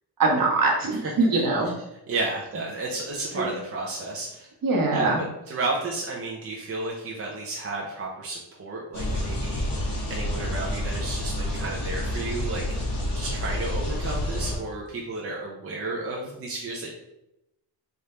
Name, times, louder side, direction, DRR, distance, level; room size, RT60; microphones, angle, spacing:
voice 1, 0.2-1.7 3.3-3.5 4.6-5.2, right 3 dB, 55° right, -1 dB, 1.2 m, -22 dB
voice 2, 2.1-4.5 4.9-16.9, right 3 dB, 35° right, -3 dB, 0.7 m, -32 dB
sound 1, 8.9-14.6, left 1 dB, 55° left, 1.3 m, -29 dB
3.4 x 2.6 x 4.3 m, 0.87 s
cardioid pair, 120°, 40 cm